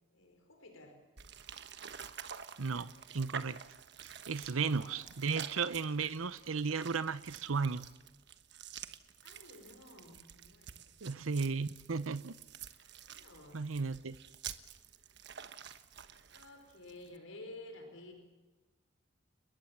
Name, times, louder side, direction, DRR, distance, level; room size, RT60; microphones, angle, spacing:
voice 1, 0.1-1.0 4.5-5.1 9.2-10.9 13.1-13.7 16.3-18.1, left 2 dB, 80° left, 5 dB, 5.0 m, -52 dB
sound 1, 1.2-17.2, right 8 dB, 55° right, 1.3 m, -49 dB
voice 2, 2.6-3.6 4.0-7.8 11.0-12.3 13.5-14.2, right 5 dB, 85° right, 14 dB, 0.8 m, -35 dB
30.0 x 21.0 x 7.3 m, 1.1 s
head